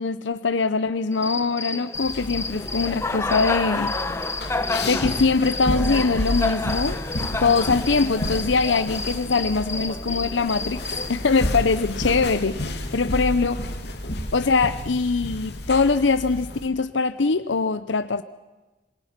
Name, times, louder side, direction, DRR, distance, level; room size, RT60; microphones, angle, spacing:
voice 1, 0.0-4.0 4.8-7.0 7.4-10.8 11.1-13.6 14.3-18.2, left 4 dB, 80° left, 0.7 m, -22 dB
Cricket, 1.1-11.1, left 3 dB, 15° left, 1.3 m, -30 dB
sound 1, 1.9-16.7, left 1 dB, 60° left, 2.8 m, -31 dB
Human voice, 5.5-9.4 9.8-12.6, left 2 dB, 35° left, 2.0 m, -44 dB
26.5 x 22.0 x 6.0 m
head